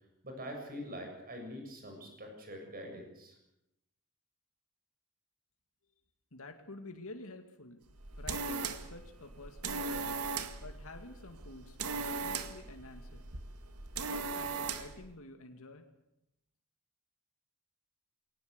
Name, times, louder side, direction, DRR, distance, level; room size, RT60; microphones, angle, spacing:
voice 1, 0.2-3.4, equal, 40° right, 3 dB, 7.2 m, -44 dB
voice 2, 6.3-7.8 8.2-10.3 10.6-13.2 14.0-15.8, left 2 dB, 70° left, 5 dB, 2.3 m, -49 dB
sound 1, 7.9-15.0, right 4 dB, 80° right, 1.9 m, -39 dB
22.5 x 18.5 x 8.1 m, 0.84 s
head